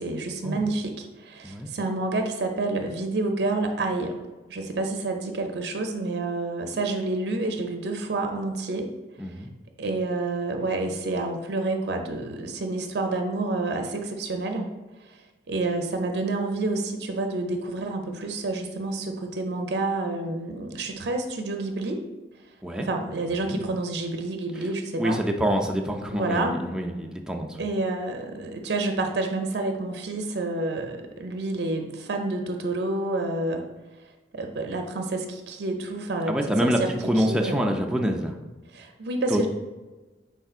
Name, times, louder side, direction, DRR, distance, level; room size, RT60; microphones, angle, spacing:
voice 1, 0.0-4.1 4.5-8.9 9.8-14.7 15.5-22.0 22.8-25.2 26.1-26.6 27.6-33.6 34.3-36.4 36.6-37.8 38.7-39.5, right 2 dB, 65° right, 4 dB, 0.5 m, -29 dB
voice 2, 9.2-9.5 22.6-22.9 23.5-23.6 24.6-24.7 25.0-27.6 36.3-36.8 37.1-38.3 39.3-39.5, equal, 5° right, 1 dB, 0.3 m, -26 dB
5.5 x 3.5 x 2.4 m, 1.2 s
head